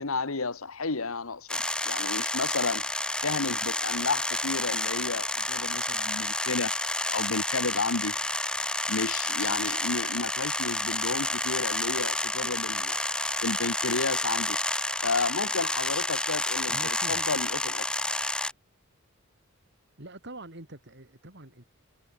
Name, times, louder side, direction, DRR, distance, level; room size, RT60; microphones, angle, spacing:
voice 1, 0.0-1.6 1.8-2.9 3.2-6.7 7.1-8.2 8.9-13.0 13.4-14.6 15.0-16.8 17.1-17.8, left 3 dB, 80° left, 1.6 m, -32 dB
sound 1, 1.5-18.5, left 2 dB, 5° left, 0.4 m, -30 dB
voice 2, 16.7-17.3 20.0-21.6, right 1 dB, 55° right, 3.4 m, -44 dB
head